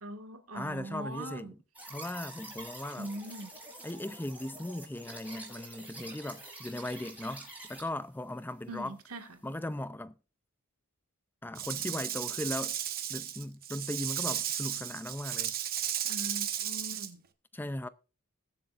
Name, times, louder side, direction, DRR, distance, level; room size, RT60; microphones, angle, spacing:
voice 1, 0.0-1.5 3.0-3.5 8.7-9.3 16.0-17.2, right 1 dB, 85° right, 1.9 m, -41 dB
voice 2, 0.5-1.6 1.9-3.1 3.8-9.0 9.4-10.1 11.4-12.8 13.1-15.5 17.5-17.9, left 1 dB, 10° left, 0.4 m, -38 dB
sound 1, 1.7-7.8, right 1 dB, 5° right, 5.0 m, -47 dB
Rattle / Rattle (instrument), 11.5-17.1, right 11 dB, 45° right, 1.1 m, -34 dB
21.5 x 7.6 x 2.5 m
head